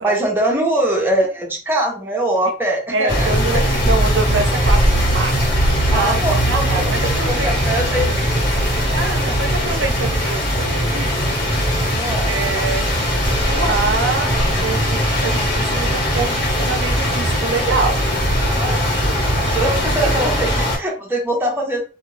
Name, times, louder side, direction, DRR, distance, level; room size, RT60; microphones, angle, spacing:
voice 1, 0.0-3.9 5.9-9.0 9.3-9.4 12.0-12.3 18.5-21.8, right 1 dB, 10° right, -1 dB, 0.8 m, -23 dB
voice 2, 2.9-5.4 5.9-7.6 8.9-11.4 12.3-12.9 13.4-18.0 18.6-18.7, right 3 dB, 90° right, 6 dB, 0.6 m, -25 dB
sound 1, 3.1-20.8, equal, 65° left, 1.6 m, -19 dB
2.7 x 2.5 x 3.2 m, 0.34 s
head